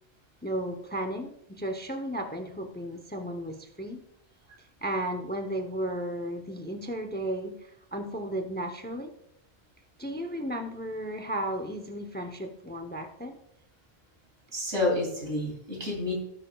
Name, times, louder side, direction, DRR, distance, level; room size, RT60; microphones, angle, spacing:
voice 1, 0.4-4.0 4.8-9.1 10.0-13.4, right 1 dB, 10° left, 6 dB, 0.6 m, -34 dB
voice 2, 14.5-16.2, left 2 dB, 85° right, -1 dB, 3.2 m, -29 dB
17.5 x 6.5 x 2.3 m, 0.76 s
omnidirectional pair, 1.1 m